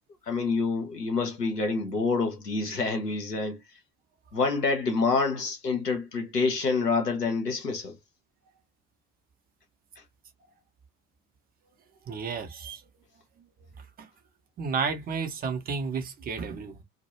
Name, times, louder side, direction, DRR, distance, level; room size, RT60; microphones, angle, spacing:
voice 1, 0.3-3.6 4.3-8.0, left 4 dB, 90° left, 0.7 m, -27 dB
voice 2, 12.1-12.8 14.0-14.1 14.6-16.8, right 5 dB, 20° right, 0.5 m, -32 dB
2.2 x 2.1 x 2.9 m
figure-of-eight pair, 65°, 47 cm